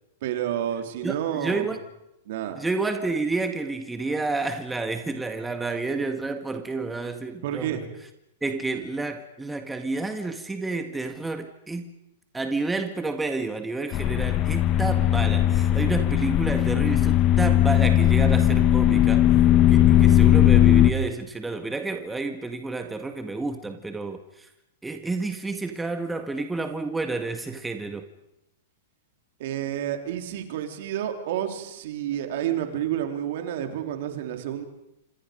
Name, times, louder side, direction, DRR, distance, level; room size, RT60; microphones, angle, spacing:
voice 1, 0.2-1.8 2.3-2.6 7.4-7.8 29.4-34.6, right 11 dB, 60° right, 5 dB, 3.7 m, -30 dB
voice 2, 1.0-1.8 2.6-7.9 8.4-11.9 12.3-19.3 19.7-24.5 24.8-28.1, right 3 dB, 10° right, 6 dB, 1.9 m, -30 dB
sound 1, 13.9-20.9, left 11 dB, 35° left, 1.5 m, -18 dB
27.0 x 27.0 x 5.3 m, 0.86 s
hypercardioid pair, 110°, 0 cm